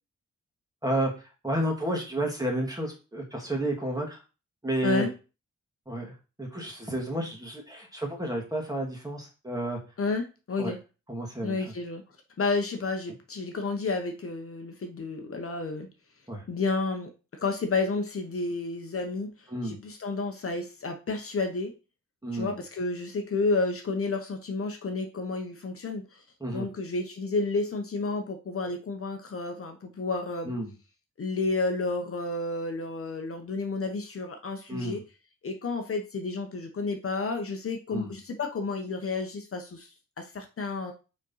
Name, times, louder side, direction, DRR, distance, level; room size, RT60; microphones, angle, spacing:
voice 1, 1.4-4.2 4.6-5.1 5.9-6.1 6.4-9.8 10.6-10.7 11.1-11.7 16.3-16.4 19.5-19.8 22.2-22.5 26.4-26.7 30.4-30.7 34.7-35.0 37.9-38.1, right 1 dB, 10° right, 0 dB, 2.1 m, -31 dB
voice 2, 4.8-5.1 10.0-10.8 11.4-12.0 12.4-15.9 16.5-17.1 17.4-21.7 22.3-26.2 26.5-30.5 31.2-35.0 35.4-39.9 40.2-40.9, left 3 dB, 45° left, 5 dB, 1.0 m, -31 dB
5.2 x 4.4 x 5.5 m, 0.32 s
wide cardioid pair, 130°, 30 cm